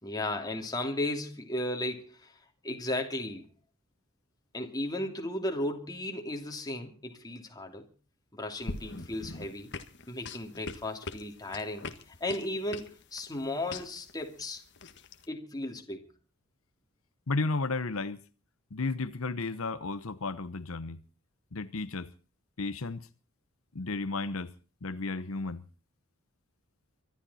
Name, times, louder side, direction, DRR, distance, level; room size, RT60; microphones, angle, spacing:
voice 1, 0.0-3.5 4.5-7.9 8.3-9.7 10.1-14.6 15.3-16.1, left 1 dB, 20° left, 2.9 m, -35 dB
sound 1, 8.6-15.2, left 3 dB, 55° left, 1.6 m, -42 dB
voice 2, 17.3-18.2 18.7-21.0 21.5-22.1 22.6-23.1 23.7-24.5 24.8-25.6, left 3 dB, 80° left, 1.0 m, -33 dB
25.0 x 12.0 x 4.2 m
head